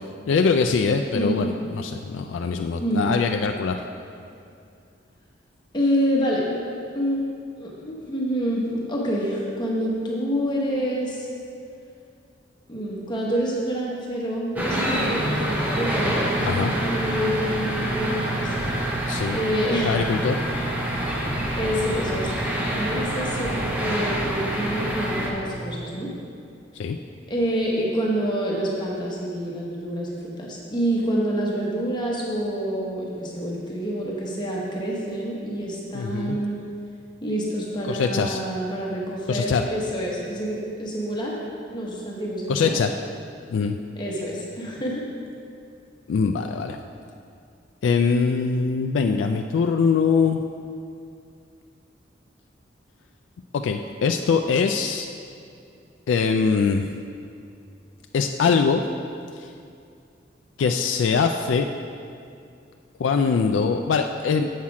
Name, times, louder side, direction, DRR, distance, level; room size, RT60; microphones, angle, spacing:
voice 1, 0.3-3.8 16.5-16.7 19.1-19.4 19.8-20.4 26.8-27.0 35.9-36.4 37.9-38.4 39.3-39.7 42.5-42.9 43.5-43.8 46.1-46.8 47.8-50.4 53.6-55.1 56.1-56.9 58.1-58.8 59.4-59.5 60.6-61.7 63.0-64.5, left 5 dB, 90° left, 5 dB, 0.3 m, -22 dB
voice 2, 1.1-1.5 2.8-3.1 5.7-6.5 6.9-7.2 7.6-11.3 12.7-18.6 19.3-20.0 21.6-22.3 22.7-26.1 27.3-36.6 37.2-41.4 41.7-42.8 43.9-45.0, equal, 25° left, -3 dB, 1.0 m, -27 dB
sound 1, 14.6-25.3, right 1 dB, 10° right, 0.8 m, -26 dB
7.4 x 5.7 x 4.8 m, 2.4 s
head